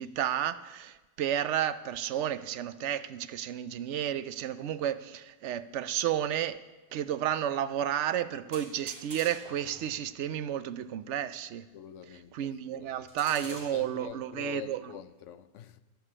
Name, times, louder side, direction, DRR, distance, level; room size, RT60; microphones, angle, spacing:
voice 1, 0.0-6.6 6.9-11.7 12.3-14.8, right 10 dB, 70° right, 0.9 m, -32 dB
sound 1, 8.5-10.0 13.1-13.8, right 1 dB, 40° right, 3.5 m, -46 dB
voice 2, 11.7-13.0 13.4-15.8, left 10 dB, 80° left, 1.0 m, -45 dB
10.0 x 8.2 x 8.5 m
omnidirectional pair, 1.3 m